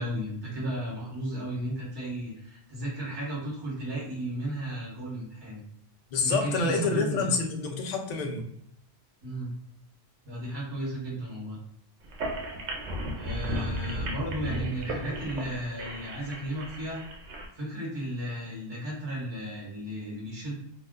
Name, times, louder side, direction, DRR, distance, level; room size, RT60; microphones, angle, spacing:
voice 1, 0.0-5.6 6.2-7.3 9.2-9.5 10.2-11.6 13.1-17.0 17.5-20.6, right 1 dB, 25° right, -6 dB, 0.9 m, -34 dB
voice 2, 6.1-8.5, left 4 dB, 55° left, 3 dB, 0.5 m, -27 dB
sound 1, 12.0-17.5, equal, 90° right, 0.9 m, -35 dB
2.4 x 2.1 x 3.5 m, 0.70 s
omnidirectional pair, 1.1 m